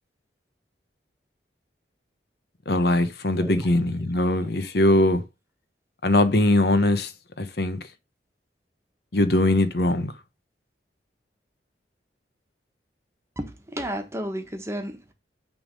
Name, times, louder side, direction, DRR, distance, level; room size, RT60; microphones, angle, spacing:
voice 1, 2.7-5.2 6.0-7.1 7.4-7.8 9.1-10.1, left 1 dB, 60° left, 1.0 m, -21 dB
voice 2, 3.4-3.8 4.4-4.6 13.4-15.1, right 1 dB, 15° right, 1.3 m, -33 dB
9.4 x 3.6 x 5.3 m
head